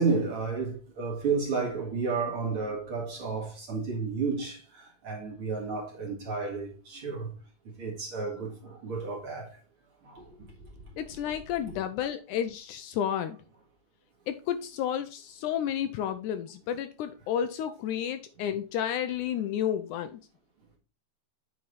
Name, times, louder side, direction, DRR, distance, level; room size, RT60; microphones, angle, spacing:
voice 1, 0.0-7.3 7.8-9.5 10.1-10.2, right 4 dB, 45° right, 2.3 m, -31 dB
voice 2, 11.0-13.4 14.3-20.2, left 9 dB, 80° left, 1.9 m, -31 dB
8.5 x 4.5 x 4.0 m
omnidirectional pair, 3.8 m